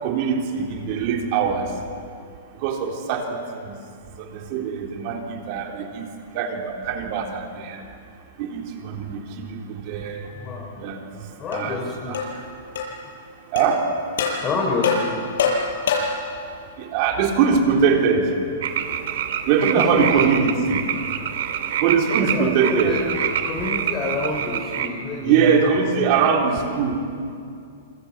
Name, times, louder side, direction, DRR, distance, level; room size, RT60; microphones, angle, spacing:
voice 1, 0.0-1.8 2.5-3.8 4.2-6.1 6.3-7.8 8.4-10.3 10.7-12.5 13.5-13.9 15.5-15.6 16.8-18.4 19.4-20.8 21.8-23.0 23.6-23.7 25.2-27.0, right 6 dB, 35° right, 2 dB, 3.7 m, -22 dB
voice 2, 10.3-10.7 11.4-12.2 14.4-15.2 19.9-20.3 22.3-23.0 23.4-25.5, left 3 dB, 20° left, -2 dB, 3.7 m, -27 dB
sound 1, 11.5-11.6 12.1-12.3 12.8-12.9 13.6-13.7 14.2-14.4 14.8-16.2, left 5 dB, 80° left, 7.8 m, -23 dB
sound 2, 18.6-24.9, right 9 dB, 60° right, 2.2 m, -27 dB
27.0 x 25.5 x 8.3 m, 2.4 s
hypercardioid pair, 165°, 0 cm